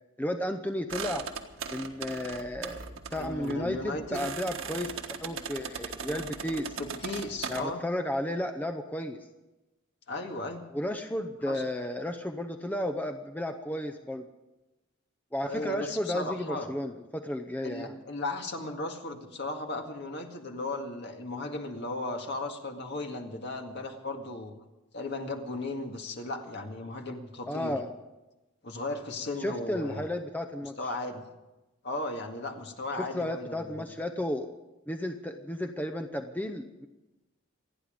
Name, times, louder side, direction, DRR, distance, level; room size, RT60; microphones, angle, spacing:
voice 1, 0.2-1.2 1.7-4.9 5.2-6.8 7.5-9.2 10.7-14.3 15.3-17.9 27.5-27.9 29.4-30.7 33.0-34.5 34.9-36.9, left 1 dB, 10° left, 7 dB, 0.7 m, -33 dB
sound 1, 0.9-7.6, right 5 dB, 85° right, 1.5 m, -39 dB
voice 2, 3.1-4.2 6.8-7.8 10.1-10.6 11.5-11.6 15.4-16.7 17.6-24.5 24.9-27.8 28.6-30.1 30.8-31.2 31.8-33.9, left 2 dB, 55° left, 3 dB, 2.0 m, -36 dB
27.5 x 9.8 x 5.2 m, 1.0 s
head